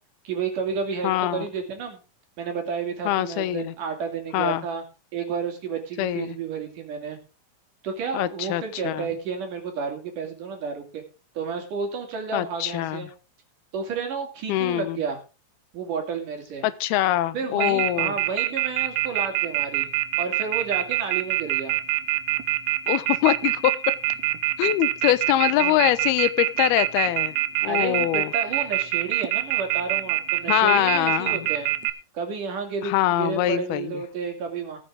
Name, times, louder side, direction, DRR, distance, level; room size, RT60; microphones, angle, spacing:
voice 1, 0.2-2.0 2.4-4.8 5.1-7.2 7.8-11.0 11.4-13.1 13.7-15.2 15.7-16.7 17.3-19.9 20.2-21.7 25.5-25.9 27.7-31.7 32.1-34.8, right 5 dB, 60° right, 4 dB, 3.8 m, -31 dB
voice 2, 1.0-1.5 3.1-3.7 4.3-4.6 6.0-6.4 8.1-9.1 12.3-13.1 14.5-15.0 16.6-18.2 22.9-23.9 24.6-27.3 27.6-28.3 30.5-31.5 32.8-34.0, left 14 dB, 85° left, 15 dB, 2.7 m, -23 dB
Telephone, 17.6-31.9, right 16 dB, 90° right, 1.5 m, -23 dB
18.5 x 7.8 x 3.6 m, 0.32 s
omnidirectional pair, 4.3 m